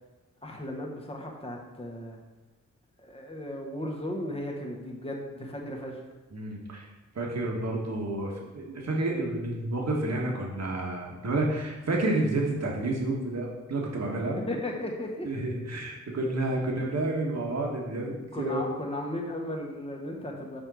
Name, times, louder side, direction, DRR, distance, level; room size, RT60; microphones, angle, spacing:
voice 1, 0.4-2.2 3.0-6.0 14.4-15.3 16.5-16.9 18.3-20.6, left 1 dB, 20° left, -1 dB, 1.5 m, -36 dB
voice 2, 6.3-6.8 7.1-14.4 15.2-18.7 20.3-20.4, right 2 dB, 60° right, -1 dB, 1.7 m, -30 dB
6.6 x 4.4 x 6.3 m, 1.1 s
wide cardioid pair, 95°, 30 cm